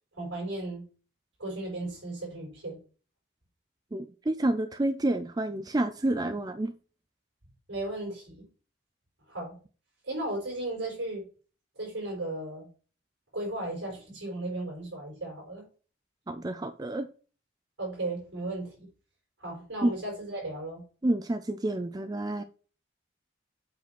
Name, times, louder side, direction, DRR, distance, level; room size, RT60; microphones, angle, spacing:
voice 1, 0.1-0.8 1.4-2.8 7.7-8.4 9.3-9.5 10.0-11.2 11.7-12.7 13.3-15.6 17.8-18.9 19.4-20.8, right 2 dB, 80° right, 5.1 m, -35 dB
voice 2, 3.9-6.7 16.3-17.1 19.8-19.9 21.0-22.4, right 1 dB, 20° right, 0.4 m, -29 dB
8.1 x 5.0 x 5.9 m
head